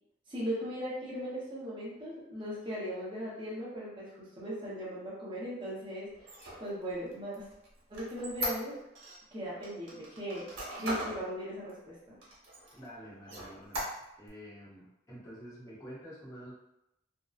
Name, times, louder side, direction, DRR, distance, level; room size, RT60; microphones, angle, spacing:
voice 1, 0.3-6.1 6.6-7.5 7.9-8.7 9.3-10.5 10.8-12.0, equal, 25° right, -8 dB, 0.6 m, -38 dB
Squeak, 6.2-9.2 9.6-11.2 11.7-11.8 12.2-12.9 13.2-14.3, right 1 dB, 90° right, 0.9 m, -39 dB
voice 2, 12.7-13.8 14.2-16.5, equal, 15° left, -9 dB, 0.8 m, -48 dB
2.6 x 2.1 x 2.3 m, 0.83 s
head